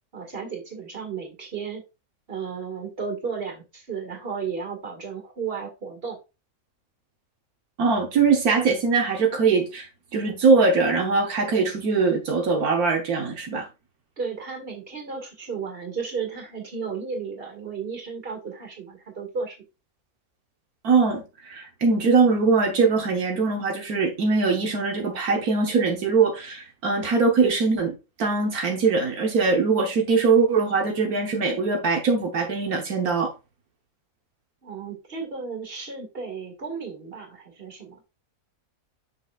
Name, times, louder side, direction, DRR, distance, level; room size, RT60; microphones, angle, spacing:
voice 1, 0.1-1.8 2.3-6.2 14.2-19.6 34.6-38.0, right 5 dB, 40° right, 2.2 m, -34 dB
voice 2, 7.8-13.7 20.8-33.3, right 4 dB, 80° right, 1.6 m, -22 dB
6.8 x 6.2 x 2.4 m
omnidirectional pair, 1.5 m